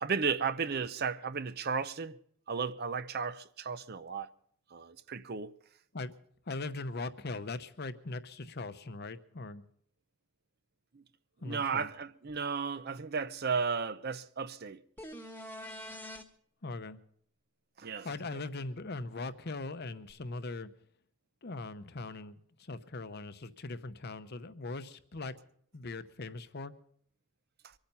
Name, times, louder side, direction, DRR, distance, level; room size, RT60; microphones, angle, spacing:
voice 1, 0.0-2.1 2.5-4.3 4.7-5.5 10.9-11.0 11.4-14.8 17.8-18.1, right 5 dB, 45° right, 0.6 m, -34 dB
voice 2, 6.5-9.6 11.4-11.9 16.6-17.0 18.0-20.7 21.4-25.3 25.7-26.7, left 3 dB, 45° left, 0.8 m, -40 dB
sound 1, 15.0-16.2 20.1-20.2, equal, 10° left, 1.2 m, -44 dB
24.0 x 8.9 x 5.5 m
head